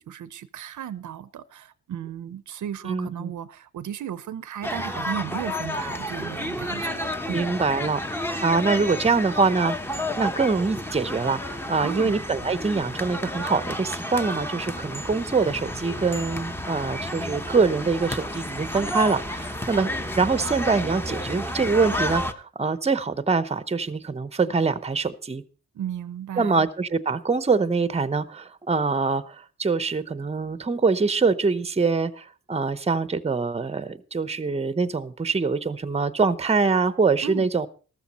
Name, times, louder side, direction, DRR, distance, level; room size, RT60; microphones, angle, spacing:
voice 1, 0.0-7.5 11.8-12.1 25.7-26.7 37.2-37.5, right 10 dB, 80° right, 0.7 m, -35 dB
voice 2, 2.8-3.3 7.3-8.0 8.4-9.8 10.2-19.9 20.2-25.4 26.4-37.7, right 4 dB, 20° right, 0.8 m, -24 dB
sound 1, 4.6-22.3, left 1 dB, 10° left, 0.9 m, -31 dB
13.5 x 13.5 x 4.1 m
wide cardioid pair, 115°, 30 cm